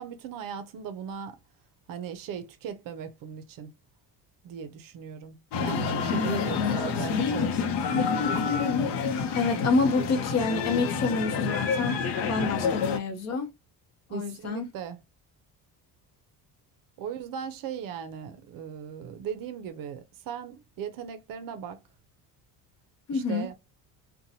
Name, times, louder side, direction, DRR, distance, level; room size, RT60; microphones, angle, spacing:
voice 1, 0.0-1.4 1.9-3.7 4.4-8.6 14.1-15.0 17.0-21.8 23.1-23.5, right 8 dB, 60° right, 0.5 m, -38 dB
sound 1, 5.5-13.0, left 5 dB, 85° left, 0.7 m, -28 dB
voice 2, 9.3-13.5 14.1-14.7 23.1-23.5, left 4 dB, 40° left, 0.7 m, -28 dB
2.7 x 2.2 x 2.7 m
cardioid pair, 160°, 39 cm